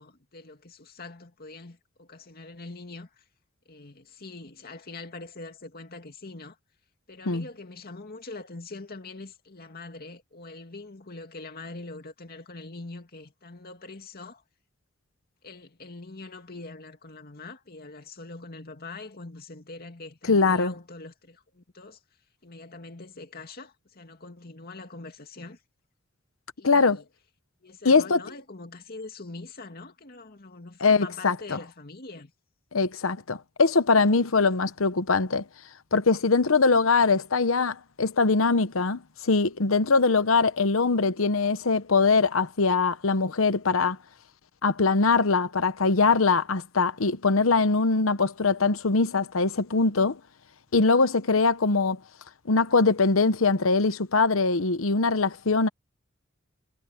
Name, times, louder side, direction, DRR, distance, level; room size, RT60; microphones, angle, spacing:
voice 1, 0.0-3.2 3.7-6.6 7.1-14.4 15.4-22.0 22.4-25.6 26.6-27.0 27.6-32.3, left 3 dB, 50° left, 2.4 m, -43 dB
voice 2, 20.3-20.7 26.6-27.0 27.8-28.2 30.8-31.6 32.7-35.4 35.9-44.0 44.6-50.2 50.7-52.0 52.5-55.7, left 4 dB, 85° left, 1.0 m, -22 dB
head